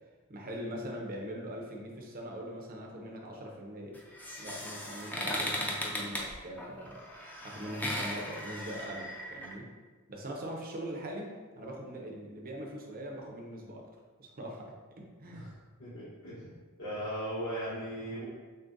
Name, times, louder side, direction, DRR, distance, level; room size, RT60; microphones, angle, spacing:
voice 1, 0.3-4.0 4.4-7.0 7.4-9.7 10.1-13.8 14.2-15.5, equal, 40° right, 0 dB, 0.7 m, -42 dB
sound 1, 3.9-9.5, left 1 dB, 5° left, 0.4 m, -37 dB
voice 2, 15.8-16.5 16.8-18.2, equal, 65° left, -12 dB, 1.1 m, -37 dB
6.2 x 2.2 x 2.6 m, 1.4 s
head